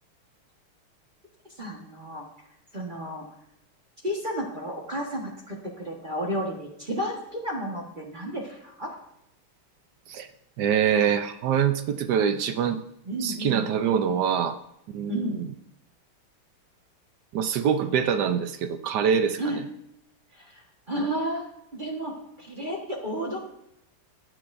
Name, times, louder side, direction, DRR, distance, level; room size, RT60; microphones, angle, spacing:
voice 1, 1.6-2.2 2.7-3.3 4.0-8.9 13.0-13.7 15.1-15.5 19.4-19.6 20.3-23.4, equal, 25° right, -1 dB, 1.3 m, -32 dB
voice 2, 10.6-12.8 13.2-14.6 14.9-15.5 17.3-19.4, right 8 dB, 70° right, 8 dB, 1.0 m, -24 dB
19.5 x 7.7 x 2.6 m, 0.80 s
omnidirectional pair, 2.4 m